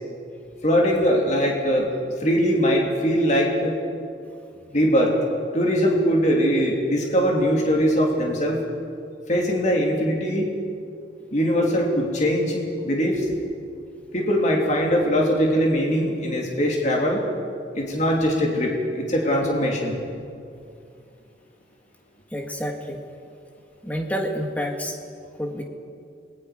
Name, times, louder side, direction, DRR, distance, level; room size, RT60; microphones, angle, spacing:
voice 1, 0.6-1.9 2.2-3.8 4.7-5.1 5.5-8.6 9.3-10.5 11.3-13.3 14.1-17.2 17.7-20.0, equal, 40° left, -1 dB, 3.0 m, -21 dB
voice 2, 22.3-23.0 23.8-25.0 25.3-25.6, equal, 10° left, 2 dB, 1.8 m, -28 dB
28.5 x 21.0 x 5.0 m, 2.5 s
head